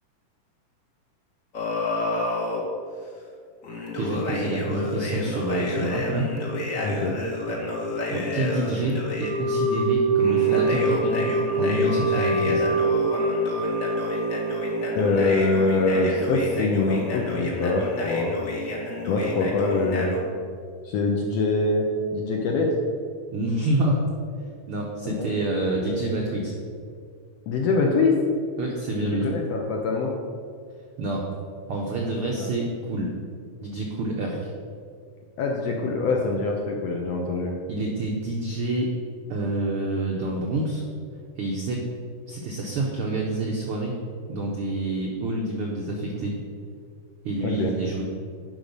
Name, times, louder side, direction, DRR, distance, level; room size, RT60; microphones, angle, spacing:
sound 1, 1.5-2.6 3.6-9.3 10.2-20.2, left 2 dB, 85° left, 0.7 m, -30 dB
voice 1, 3.9-6.3 8.1-12.7 23.3-24.0 24.7-26.5 28.6-29.3 31.0-31.3 31.7-33.1 33.6-34.5 37.7-38.9 39.3-40.8 41.4-41.8 42.3-43.9 44.3-46.4 47.2-48.0, right 2 dB, 80° right, -1 dB, 1.2 m, -27 dB
voice 2, 6.8-7.1 15.0-18.3 19.1-20.2 20.8-22.7 25.0-25.3 27.5-28.2 29.0-30.1 32.4-32.5 35.4-37.5 47.4-47.7, left 3 dB, 70° left, 0 dB, 1.6 m, -24 dB
Wind instrument woodwind instrument, 9.2-14.8, right 2 dB, 15° left, 1.4 m, -24 dB
10.5 x 5.6 x 5.3 m, 2.1 s
omnidirectional pair, 3.8 m